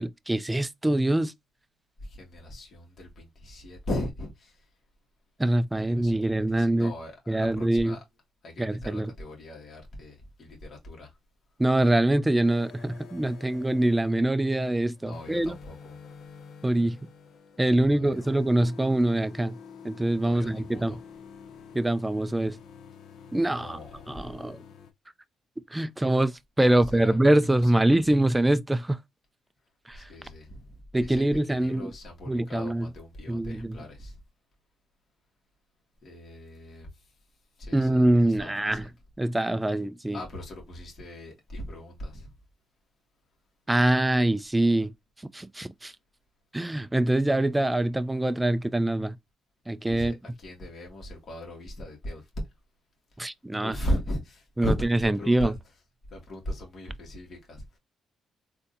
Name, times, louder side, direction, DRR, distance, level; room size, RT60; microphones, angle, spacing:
voice 1, 0.0-1.3 5.4-6.9 7.3-8.0 8.6-9.1 11.6-15.6 16.6-17.0 17.6-19.6 19.8-21.0 21.7-22.6 23.3-23.8 24.1-24.6 25.7-29.0 29.9-30.1 30.9-31.9 32.3-32.9 33.3-33.8 37.7-38.9 39.2-40.2 43.7-44.9 45.3-45.9 46.5-49.2 49.7-50.1 53.2-53.8 54.6-54.7 55.0-55.5, right 1 dB, 10° right, 0.3 m, -24 dB
voice 2, 2.0-4.6 5.8-8.0 8.4-11.1 15.0-16.0 17.6-18.2 20.2-21.0 23.5-24.2 26.7-27.2 27.6-28.0 29.9-34.2 36.0-36.9 37.6-38.9 40.1-42.3 49.9-52.2 53.6-55.6 56.1-57.8, left 1 dB, 45° left, 1.7 m, -38 dB
sound 1, 12.4-24.9, left 6 dB, 70° left, 0.6 m, -48 dB
3.7 x 2.6 x 2.5 m
cardioid pair, 90°, 0 cm